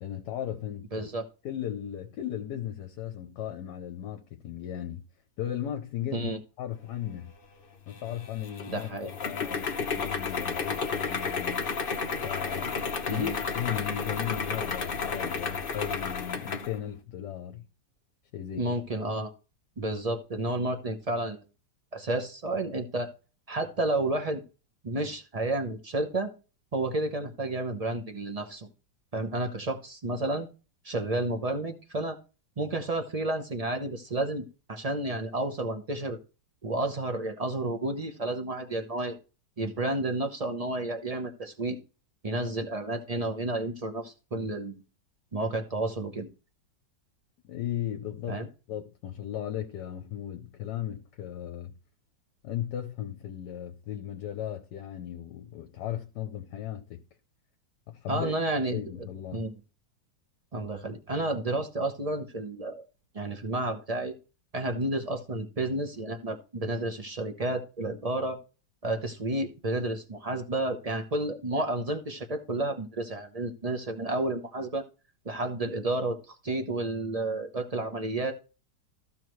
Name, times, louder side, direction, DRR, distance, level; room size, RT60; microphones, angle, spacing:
voice 1, 0.0-1.1 1.4-5.0 5.4-6.3 6.6-7.3 7.9-11.7 12.2-12.8 13.1-17.7 18.3-18.7 47.4-51.7 52.4-57.0 57.9-58.3 58.7-59.5, left 11 dB, 70° left, 1.3 m, -36 dB
voice 2, 0.9-1.2 6.1-6.4 8.7-9.1 13.1-13.4 18.6-19.3 19.8-21.4 21.9-23.1 23.5-24.4 24.8-26.3 26.7-28.7 29.1-30.5 30.8-32.2 32.6-36.2 36.6-39.2 39.6-41.8 42.2-44.8 45.3-46.3 48.3-48.5 58.1-59.1 59.3-59.5 60.5-62.8 63.1-64.1 64.5-68.4 68.8-74.8 75.2-78.3, right 2 dB, 30° right, 0.7 m, -31 dB
sound 1, 7.9-16.7, left 5 dB, 45° left, 0.7 m, -32 dB
14.5 x 5.6 x 3.1 m
omnidirectional pair, 2.0 m